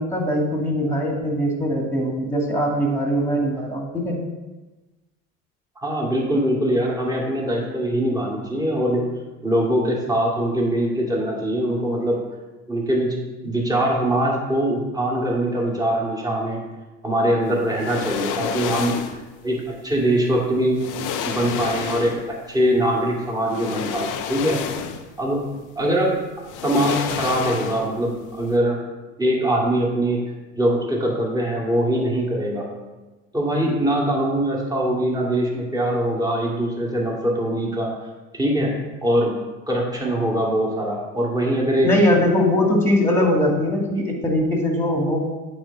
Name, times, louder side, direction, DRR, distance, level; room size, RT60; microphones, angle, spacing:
voice 1, 0.0-4.2 41.8-45.2, left 1 dB, 5° left, 0 dB, 2.1 m, -21 dB
voice 2, 5.8-9.0 9.4-12.2 12.7-13.1 13.4-16.6 17.0-19.0 19.4-20.8 21.2-24.6 25.2-25.4 25.8-26.2 26.6-28.8 29.2-30.2 30.5-32.7 33.3-37.9 38.3-38.7 39.0-39.3 39.7-41.9, right 1 dB, 10° right, -3 dB, 2.2 m, -22 dB
sound 1, 17.7-19.3 20.3-20.4 20.8-22.4 23.5-25.2 25.5-25.6 26.4-28.1 28.3-28.5, left 8 dB, 50° left, 0.7 m, -30 dB
9.0 x 3.3 x 5.3 m, 1.2 s
hypercardioid pair, 65°, 39 cm